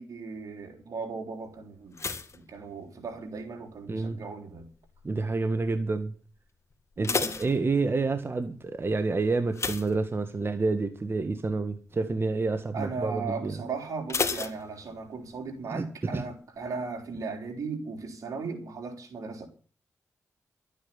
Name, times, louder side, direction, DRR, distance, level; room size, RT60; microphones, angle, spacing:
voice 1, 0.0-2.0 2.3-4.7 7.0-7.3 12.7-19.5, right 4 dB, 75° right, 3.8 m, -37 dB
sound 1, 1.9-3.4 3.7-4.2 4.8-5.2 5.5-5.6 6.0-6.1 6.7-8.2 9.5-10.7 11.0-11.3 11.7-11.8 14.1-15.3 15.6-15.7, left 4 dB, 55° left, 2.0 m, -33 dB
voice 2, 5.0-6.1 7.0-13.6 15.7-15.9 16.1-16.2, right 3 dB, 45° right, 1.6 m, -28 dB
12.5 x 9.1 x 8.8 m
cardioid pair, 45°, 6 cm